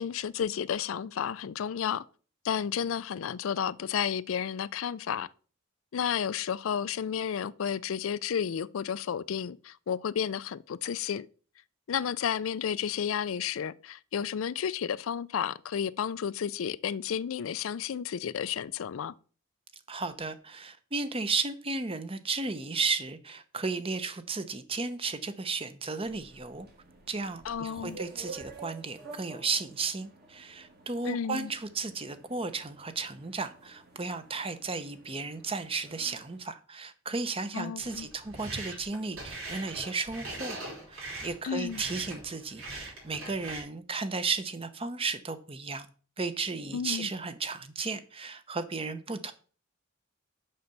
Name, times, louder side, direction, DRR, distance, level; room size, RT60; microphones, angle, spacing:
voice 1, 0.0-2.0 2.4-5.3 5.9-11.3 11.9-19.1 27.4-28.0 31.0-31.5 37.5-38.1 41.4-41.8 46.7-47.1, left 8 dB, 85° left, 0.4 m, -32 dB
voice 2, 19.9-26.7 27.1-40.6 40.9-45.9 46.2-49.3, right 4 dB, 30° right, 0.8 m, -34 dB
sound 1, 26.0-36.4, right 3 dB, 50° right, 2.4 m, -50 dB
sound 2, 37.8-43.6, right 2 dB, 90° right, 4.5 m, -42 dB
6.6 x 5.7 x 6.7 m
head